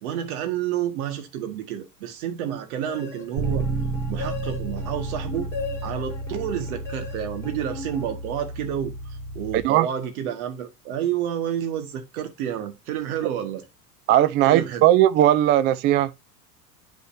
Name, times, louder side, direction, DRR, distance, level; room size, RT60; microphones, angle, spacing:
voice 1, 0.0-3.7 4.1-5.5 5.8-13.6 14.4-14.9, right 10 dB, 60° right, 1.8 m, -30 dB
sound 1, 2.9-8.7, left 3 dB, 5° left, 3.3 m, -38 dB
Bass guitar, 3.4-9.6, right 3 dB, 45° right, 3.1 m, -31 dB
voice 2, 9.5-9.9 14.1-16.1, right 13 dB, 25° right, 0.3 m, -18 dB
11.5 x 4.3 x 2.7 m
hypercardioid pair, 80°, 48 cm